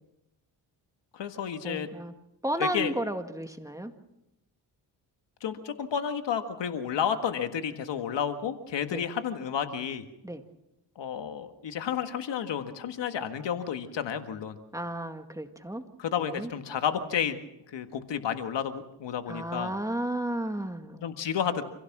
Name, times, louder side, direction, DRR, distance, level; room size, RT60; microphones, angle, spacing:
voice 1, 1.1-1.9 2.6-2.9 5.4-10.1 11.0-14.6 16.0-17.4 17.7-19.7 20.9-21.6, left 8 dB, 75° left, 8 dB, 1.8 m, -31 dB
voice 2, 1.6-2.1 2.4-3.9 8.9-9.0 10.2-10.4 14.7-15.8 16.2-16.5 19.3-21.0, right 1 dB, 5° right, 6 dB, 2.0 m, -33 dB
27.0 x 16.5 x 6.1 m, 0.87 s
cardioid pair, 70°, 43 cm